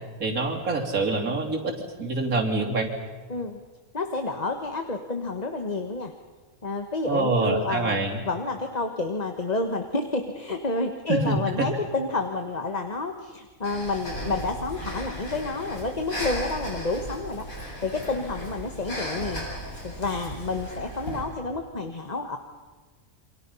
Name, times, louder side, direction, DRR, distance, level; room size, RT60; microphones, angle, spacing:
voice 1, 0.2-1.7 2.0-2.9 7.1-8.2 11.1-11.7, right 3 dB, 90° right, 1 dB, 3.7 m, -25 dB
voice 2, 3.3-3.6 3.9-6.1 6.6-8.0 8.2-19.5 19.8-22.4, left 3 dB, 30° left, 5 dB, 1.4 m, -29 dB
Breathing, 13.6-21.3, equal, 85° left, 8.4 m, -36 dB
29.0 x 26.0 x 5.6 m, 1.4 s
omnidirectional pair, 1.4 m